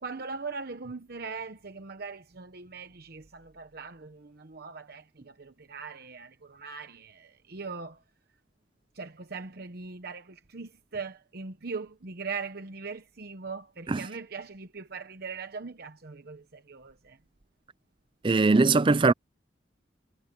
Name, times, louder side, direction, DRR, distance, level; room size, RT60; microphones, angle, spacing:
voice 1, 0.0-8.0 8.9-17.2, right 4 dB, 55° right, 1.0 m, -40 dB
voice 2, 18.2-19.1, right 3 dB, 30° right, 0.4 m, -21 dB
head